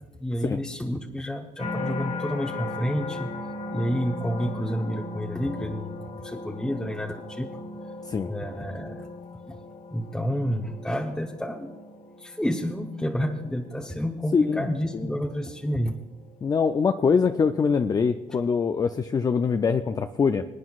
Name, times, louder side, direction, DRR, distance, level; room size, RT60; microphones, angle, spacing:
voice 1, 0.2-3.3 3.7-7.5 8.3-9.1 9.5-9.6 9.9-11.7 12.2-16.0, equal, 5° left, 0 dB, 0.8 m, -29 dB
sound 1, 1.6-16.8 17.3-17.7, left 2 dB, 40° left, 1.1 m, -38 dB
voice 2, 14.3-14.7 16.4-20.4, left 5 dB, 20° left, 9 dB, 0.4 m, -23 dB
25.5 x 9.1 x 2.4 m, 1.2 s
cardioid pair, 110°, 17 cm